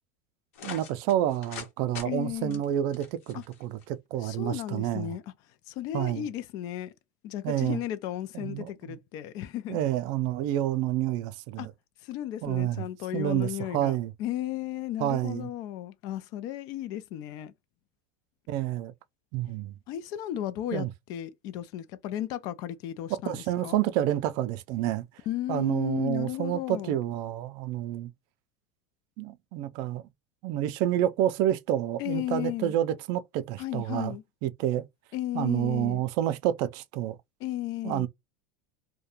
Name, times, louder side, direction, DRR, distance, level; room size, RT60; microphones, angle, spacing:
sound 1, 0.5-1.7 1.9-2.1 2.5-3.8, left 7 dB, 85° left, 0.9 m, -42 dB
voice 1, 0.6-5.2 5.9-6.3 7.4-7.8 8.3-9.0 9.7-11.7 12.4-12.8 13.1-14.1 15.0-15.5 18.5-18.9 19.3-19.7 20.7-20.9 23.1-25.0 25.5-28.1 29.2-30.0 30.4-34.2 34.4-34.9 35.3-37.2 37.8-38.1, right 12 dB, 60° right, 0.4 m, -29 dB
voice 2, 2.0-2.6 3.3-3.4 4.2-5.2 5.7-6.9 7.2-9.8 11.6-11.7 12.0-17.5 19.9-23.8 25.3-27.0 32.0-32.7 33.6-34.2 35.1-36.0 37.4-38.1, left 13 dB, 60° left, 0.4 m, -34 dB
2.4 x 2.2 x 2.8 m
supercardioid pair, 125°, 8 cm